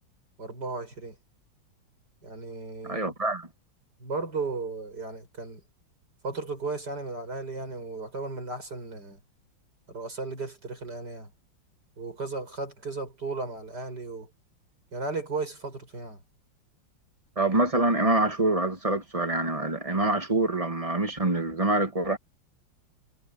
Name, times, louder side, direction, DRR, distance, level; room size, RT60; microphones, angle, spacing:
voice 1, 0.4-1.2 2.2-3.1 4.0-5.6 6.2-9.2 9.9-11.3 12.0-14.3 14.9-16.2, right 3 dB, 60° right, 7.6 m, -35 dB
voice 2, 2.8-3.5 17.4-22.2, right 2 dB, 20° right, 1.5 m, -25 dB
omnidirectional pair, 2.1 m